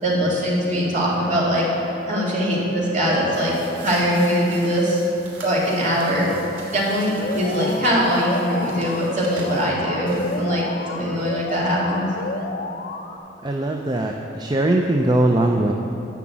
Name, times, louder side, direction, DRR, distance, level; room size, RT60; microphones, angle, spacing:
voice 1, 0.0-1.6 2.1-3.5 3.8-5.0 5.4-6.3 6.7-12.1, equal, 40° right, -5 dB, 2.4 m, -21 dB
sound 1, 3.3-10.7, right 1 dB, 75° right, 2.7 m, -40 dB
Alarm, 7.2-13.2, left 3 dB, 50° left, 0.7 m, -31 dB
voice 2, 13.4-15.7, right 1 dB, 25° right, 2 dB, 0.5 m, -20 dB
11.0 x 5.9 x 7.4 m, 2.9 s
head